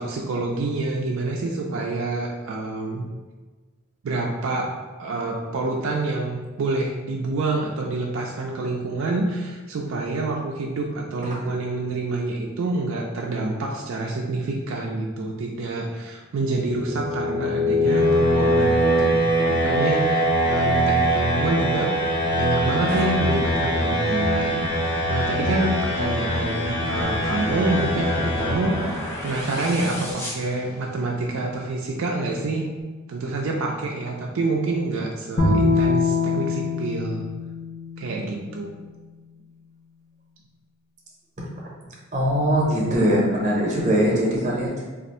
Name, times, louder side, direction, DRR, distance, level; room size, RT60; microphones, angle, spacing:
voice 1, 0.0-3.1 4.0-21.9 22.3-24.8 25.1-32.7 33.1-37.2 38.0-38.7, right 2 dB, 70° right, -1 dB, 0.4 m, -27 dB
sound 1, 16.6-29.5, equal, 80° left, 1.1 m, -23 dB
sound 2, 26.7-31.3, left 1 dB, 10° left, 0.4 m, -36 dB
Bowed string instrument, 35.4-38.6, left 3 dB, 50° left, 0.7 m, -24 dB
voice 2, 42.1-44.9, equal, 35° right, -4 dB, 0.7 m, -21 dB
2.6 x 2.4 x 4.1 m, 1.3 s
head